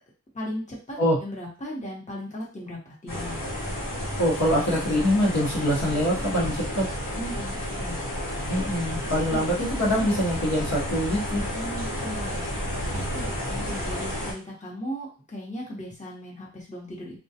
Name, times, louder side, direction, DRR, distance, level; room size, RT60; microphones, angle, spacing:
voice 1, 0.3-3.4 7.2-8.0 9.3-9.4 11.5-12.5 12.9-17.2, equal, 25° left, -4 dB, 0.9 m, -37 dB
sound 1, 3.1-14.3, equal, 80° left, 1.0 m, -31 dB
voice 2, 4.2-6.8 8.5-11.4, equal, 55° left, -5 dB, 0.9 m, -24 dB
2.3 x 2.2 x 2.7 m, 0.35 s
wide cardioid pair, 45°, 31 cm